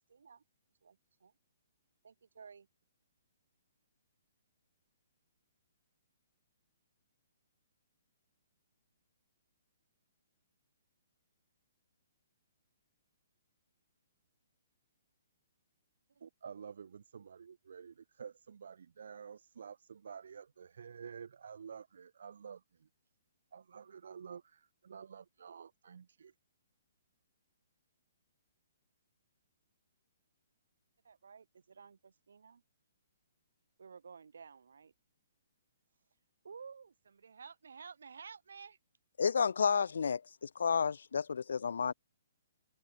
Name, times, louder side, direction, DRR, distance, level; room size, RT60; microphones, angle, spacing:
voice 1, 0.1-0.4 0.8-1.3 2.0-2.7 16.1-16.2 31.0-32.6 33.8-34.9 36.4-38.8, right 6 dB, 85° right, 1.1 m, -53 dB
voice 2, 16.2-22.9 23.5-26.3, right 7 dB, 60° right, 1.2 m, -50 dB
voice 3, 39.2-41.9, left 6 dB, 75° left, 0.3 m, -31 dB
hypercardioid pair, 175°, 0 cm